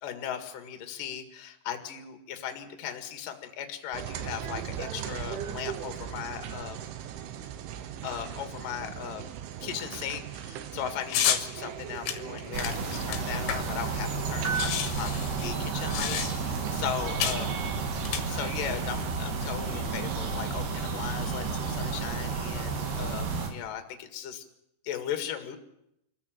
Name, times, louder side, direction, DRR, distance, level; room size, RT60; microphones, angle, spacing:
voice 1, 0.0-6.8 8.0-9.2 9.6-15.1 15.4-17.5 18.2-24.4 24.8-25.6, left 9 dB, 55° left, 6 dB, 3.1 m, -37 dB
sound 1, 3.9-19.1, right 9 dB, 85° right, 3.8 m, -39 dB
sound 2, 11.1-11.5 12.1-13.9 14.1-14.2 14.4-16.6 17.2-17.5 18.0-18.8, left 9 dB, 85° left, 3.9 m, -30 dB
sound 3, 12.5-23.5, right 4 dB, 60° right, 4.2 m, -32 dB
25.5 x 14.5 x 9.0 m, 0.81 s
omnidirectional pair, 5.4 m